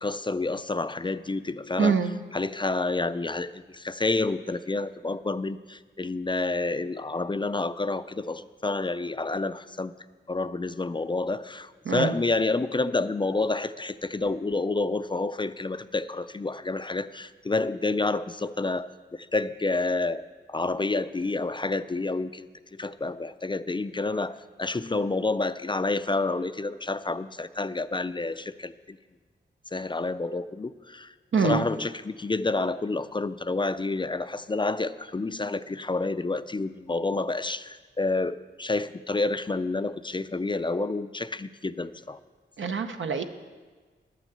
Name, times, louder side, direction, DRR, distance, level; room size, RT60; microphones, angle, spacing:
voice 1, 0.0-2.0 2.3-9.9 10.3-29.0 29.7-31.1 31.4-42.2, left 3 dB, 25° left, 13 dB, 0.4 m, -29 dB
voice 2, 1.8-2.1 11.8-12.2 31.3-31.6 42.6-43.2, right 5 dB, 80° right, 7 dB, 0.8 m, -24 dB
11.5 x 6.2 x 7.8 m, 1.4 s
wide cardioid pair, 65°, 20 cm